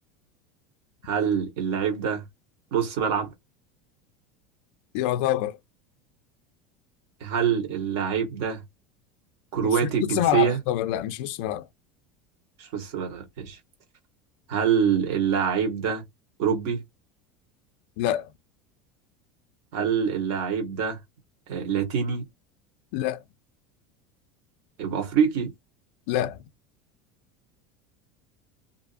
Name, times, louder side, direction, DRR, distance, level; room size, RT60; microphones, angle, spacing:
voice 1, 1.0-2.2 2.7-3.3 7.2-8.6 9.5-10.6 12.6-13.6 14.5-16.0 16.4-16.8 19.7-21.0 21.5-22.2 24.8-25.5, right 7 dB, 50° right, 1.2 m, -25 dB
voice 2, 4.9-5.6 10.0-11.7 18.0-18.3 22.9-23.2 26.1-26.4, left 13 dB, 60° left, 0.3 m, -26 dB
2.6 x 2.4 x 2.5 m
cardioid pair, 175°, 7 cm